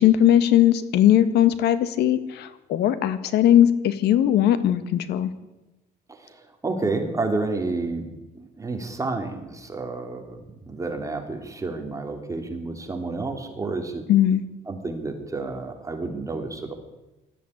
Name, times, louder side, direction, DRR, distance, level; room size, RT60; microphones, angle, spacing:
voice 1, 0.0-5.3 14.1-14.4, left 11 dB, 80° left, 12 dB, 1.8 m, -19 dB
voice 2, 6.1-8.1 8.3-14.0 14.7-16.7, right 3 dB, 20° right, 4 dB, 3.3 m, -30 dB
18.5 x 14.0 x 10.0 m, 1.0 s
cardioid pair, 110°, 17 cm